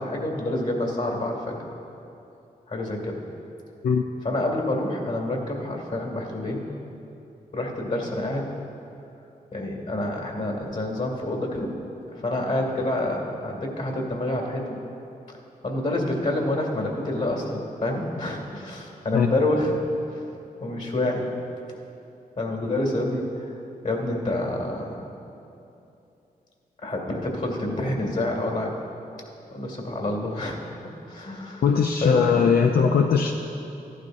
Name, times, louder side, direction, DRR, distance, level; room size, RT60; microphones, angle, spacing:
voice 1, 0.0-1.6 2.7-3.2 4.2-6.6 7.5-8.5 9.5-11.7 12.1-14.7 15.6-19.7 20.1-20.2 20.6-21.3 22.4-23.5 23.8-25.1 26.8-28.8 29.5-30.6 31.1-31.6 32.0-32.3 32.7-32.8, left 1 dB, 55° left, 1 dB, 2.3 m, -27 dB
voice 2, 31.6-33.3, left 6 dB, 85° left, 3 dB, 0.5 m, -20 dB
15.0 x 11.5 x 2.7 m, 2.8 s
cardioid pair, 70°, 15 cm